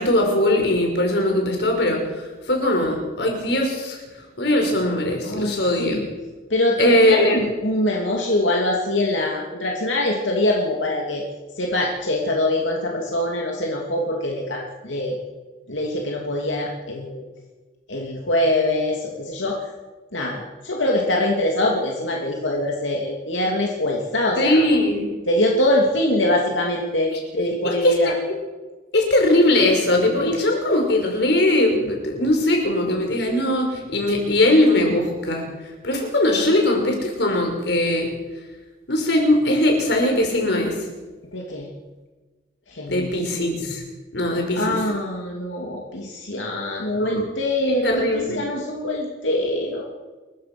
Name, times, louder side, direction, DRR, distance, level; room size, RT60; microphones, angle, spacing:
voice 1, 0.0-2.0 2.5-4.0 4.4-6.0 6.8-7.4 24.4-25.0 27.1-27.2 27.8-28.1 28.9-35.4 35.8-38.1 38.9-40.7 42.9-43.8 44.1-44.8 46.9-47.2 47.8-48.4, left 1 dB, 65° left, 2 dB, 5.5 m, -20 dB
voice 2, 5.2-6.1 6.5-11.2 11.6-15.2 15.7-17.2 17.9-19.6 20.1-24.6 25.3-28.2 41.3-41.7 42.7-43.1 44.5-49.9, left 1 dB, 90° left, -1 dB, 2.9 m, -23 dB
28.5 x 15.0 x 6.2 m, 1.3 s
head